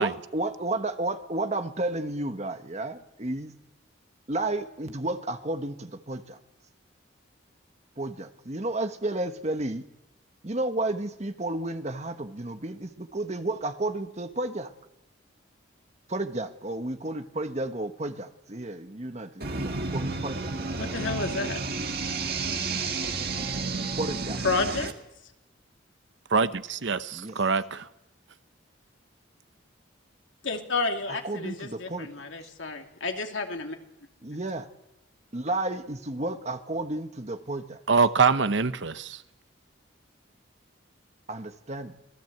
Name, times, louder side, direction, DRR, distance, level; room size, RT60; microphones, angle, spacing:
voice 1, 0.0-3.5 4.3-6.4 8.0-9.8 10.4-14.7 16.1-20.5 23.9-24.4 27.1-27.4 31.1-32.1 34.2-34.6 35.3-37.8 41.3-42.0, right 2 dB, 35° right, 1.3 m, -32 dB
sound 1, 19.4-24.9, right 4 dB, 50° right, 1.9 m, -31 dB
voice 2, 20.8-21.6 24.4-24.9 30.4-33.8, left 3 dB, 80° left, 2.7 m, -30 dB
voice 3, 26.3-27.9 37.9-39.2, right 4 dB, 70° right, 0.9 m, -24 dB
26.0 x 18.0 x 8.0 m
head